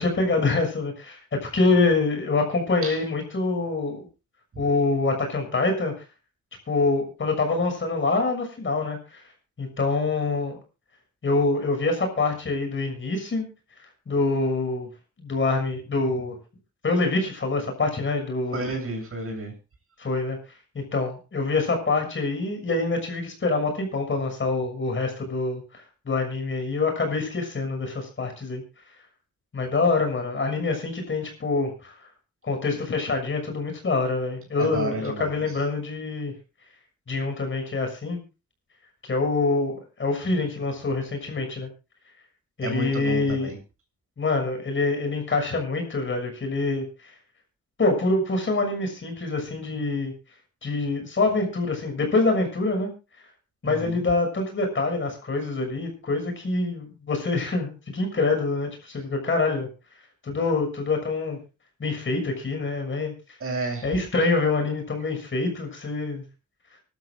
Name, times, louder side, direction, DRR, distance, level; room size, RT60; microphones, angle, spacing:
voice 1, 0.0-4.1 4.6-5.9 6.7-9.2 9.6-10.6 11.2-13.5 14.1-14.9 15.2-16.3 16.8-18.6 20.0-20.4 20.7-25.6 26.0-28.6 29.5-31.9 32.4-36.3 37.1-38.2 39.0-41.7 42.6-43.5 44.2-46.8 47.8-50.1 50.6-52.9 53.6-59.7 60.2-61.4 61.8-63.1 63.8-66.2, left 3 dB, 40° left, 3 dB, 6.6 m, -25 dB
voice 2, 18.5-19.5 34.6-35.3 42.6-43.5 53.6-54.0 63.4-63.9, right 2 dB, 50° right, 2 dB, 8.0 m, -31 dB
25.0 x 12.5 x 2.5 m, 0.31 s
wide cardioid pair, 125°, 30 cm